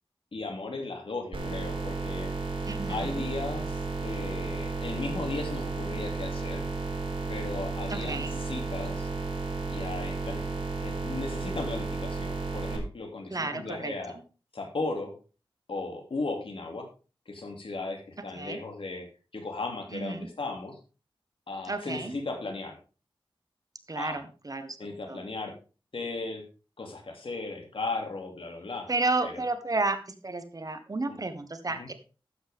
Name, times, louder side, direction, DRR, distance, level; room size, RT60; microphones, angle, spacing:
voice 1, 0.3-2.3 2.9-6.7 7.3-9.1 9.7-14.2 14.5-15.1 15.7-16.9 17.3-19.1 19.3-20.8 21.5-22.8 23.9-24.2 24.8-25.5 25.9-26.4 26.8-28.9 29.2-29.4 31.1-31.2 31.8-31.9, left 3 dB, 75° left, 3 dB, 2.7 m, -36 dB
sound 1, 1.3-12.8, right 4 dB, 80° right, 3.9 m, -33 dB
voice 2, 2.7-3.3 7.9-8.4 13.3-13.9 18.4-18.6 19.9-20.3 21.7-22.1 23.9-24.8 25.1-25.2 28.9-30.0 30.2-31.9, right 3 dB, 40° right, 9 dB, 1.3 m, -32 dB
12.0 x 8.3 x 3.6 m, 0.34 s
wide cardioid pair, 80°, 9 cm